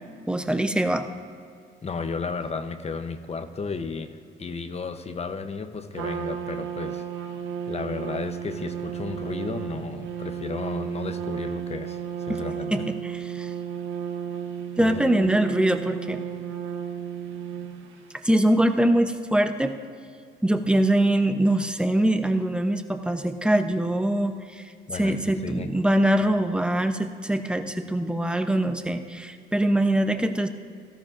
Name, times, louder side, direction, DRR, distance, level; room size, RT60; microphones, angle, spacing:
voice 1, 0.3-1.0 12.3-12.4 12.7-13.5 14.8-16.2 18.2-19.8 20.4-24.6 24.9-30.5, right 1 dB, 5° right, 7 dB, 0.7 m, -23 dB
voice 2, 1.8-7.0 7.7-12.8 14.8-15.0 24.9-25.7, left 4 dB, 30° left, 9 dB, 0.8 m, -33 dB
Trumpet, 5.9-18.1, right 8 dB, 80° right, 1.1 m, -33 dB
17.0 x 13.5 x 2.6 m, 2.3 s
cardioid pair, 90°, 20 cm